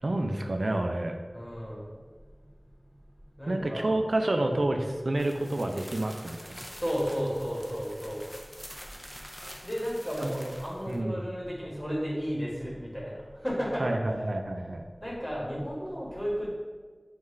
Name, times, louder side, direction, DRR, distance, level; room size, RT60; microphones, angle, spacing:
voice 1, 0.0-1.2 3.5-6.6 10.2-10.5 10.9-11.2 13.8-14.8, right 1 dB, 85° right, 4 dB, 0.3 m, -29 dB
voice 2, 1.3-1.9 3.4-3.9 6.8-8.2 9.6-13.1 13.4-14.1 15.0-16.6, equal, 20° left, -5 dB, 1.3 m, -33 dB
sound 1, 5.1-11.0, equal, 5° left, 0.5 m, -46 dB
5.4 x 2.4 x 3.2 m, 1.5 s
wide cardioid pair, 40°, 0 cm